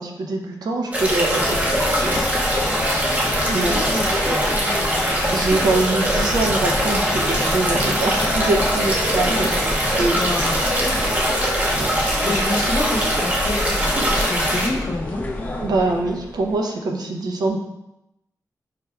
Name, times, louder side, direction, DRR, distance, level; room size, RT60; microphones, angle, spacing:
voice 1, 0.0-1.6 1.9-2.3 3.5-4.8 5.3-9.5 10.0-10.2 11.8-11.9 15.6-17.6, right 2 dB, 75° right, 2 dB, 0.6 m, -24 dB
sound 1, 0.9-14.7, equal, 20° right, 0.6 m, -22 dB
sound 2, 1.4-16.5, left 1 dB, 25° left, 0.4 m, -28 dB
voice 2, 3.6-4.1 10.1-10.7 11.9-13.8 14.1-15.2, left 2 dB, 65° left, -1 dB, 0.8 m, -28 dB
4.9 x 3.2 x 2.3 m, 0.88 s
wide cardioid pair, 165°, 7 cm